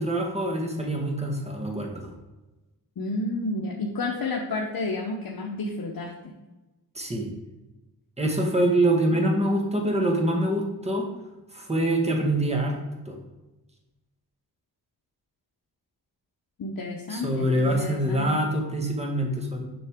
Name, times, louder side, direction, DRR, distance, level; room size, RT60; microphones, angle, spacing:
voice 1, 0.0-2.1 6.9-7.3 8.2-11.1 11.5-12.7 13.0-13.2 17.1-19.7, right 1 dB, 15° right, 1 dB, 1.6 m, -25 dB
voice 2, 3.0-6.1 16.6-18.4, left 2 dB, 65° left, -1 dB, 1.0 m, -31 dB
7.5 x 5.8 x 3.6 m, 1.1 s
wide cardioid pair, 105°, 39 cm